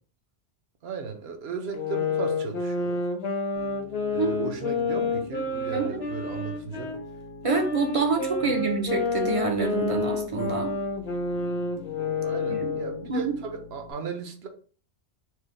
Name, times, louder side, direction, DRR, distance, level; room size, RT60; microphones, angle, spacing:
voice 1, 0.8-3.0 4.1-6.9 8.4-8.7 12.2-14.5, right 5 dB, 70° right, 0.9 m, -36 dB
sound 1, 1.7-7.0 7.4-13.1, left 4 dB, 40° left, 0.7 m, -29 dB
Piano, 3.6-13.9, left 3 dB, 90° left, 1.0 m, -45 dB
voice 2, 4.2-4.5 5.7-6.0 7.4-10.7 12.5-12.7 13.1-13.3, right 4 dB, 40° right, 0.5 m, -27 dB
4.6 x 2.1 x 3.1 m
omnidirectional pair, 1.1 m